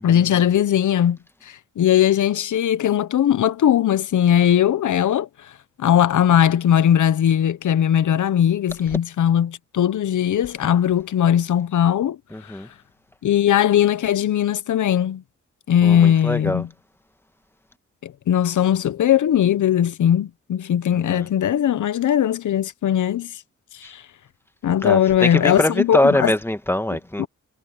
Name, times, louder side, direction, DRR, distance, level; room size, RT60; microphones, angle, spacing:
voice 1, 0.0-1.2 1.5-5.3 5.8-12.2 13.2-15.2 15.7-16.7 18.0-23.3 23.8-24.0 24.6-26.3 27.2-27.3, left 10 dB, 75° left, 1.1 m, -19 dB
voice 2, 12.3-12.7 15.8-16.6 21.1-21.2 24.8-27.3, left 1 dB, 5° left, 1.7 m, -22 dB
cardioid pair, 70°, 31 cm